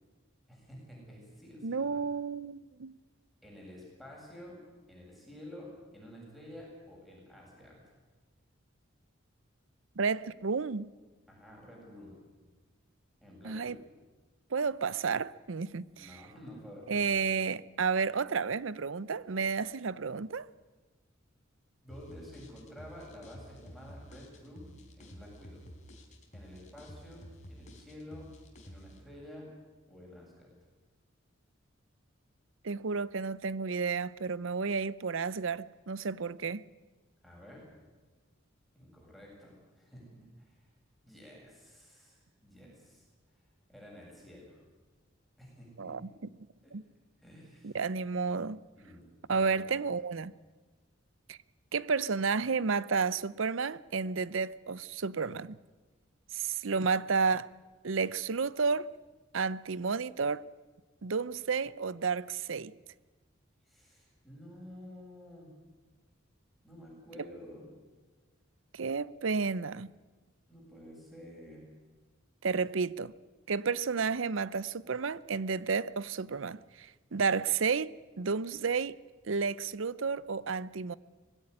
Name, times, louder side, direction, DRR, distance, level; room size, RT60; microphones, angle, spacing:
voice 1, 0.5-2.0 3.4-4.6 4.9-7.9 11.3-12.2 13.2-13.8 16.0-17.2 21.8-25.7 26.3-28.3 28.6-29.5 29.9-30.5 37.2-37.7 38.7-40.7 41.0-43.1 43.7-44.6 45.4-46.0 46.6-46.7 47.2-47.8 48.8-49.0 49.3-49.8 63.6-65.5 66.6-67.7 70.5-71.7, left 1 dB, ahead, 7.7 m, -50 dB
voice 2, 1.6-2.9 10.0-10.9 13.4-13.8 14.5-16.2 16.9-20.5 32.6-36.6 45.8-46.1 46.7-46.8 47.6-48.6 49.3-50.3 51.3-51.4 51.7-55.6 56.3-57.5 57.8-58.9 59.3-60.4 61.0-62.7 68.7-69.9 72.4-73.1 73.5-78.9 79.2-80.9, right 5 dB, 75° right, 0.7 m, -31 dB
sound 1, 21.9-29.0, equal, 40° left, 4.1 m, -51 dB
21.0 x 16.5 x 9.8 m
head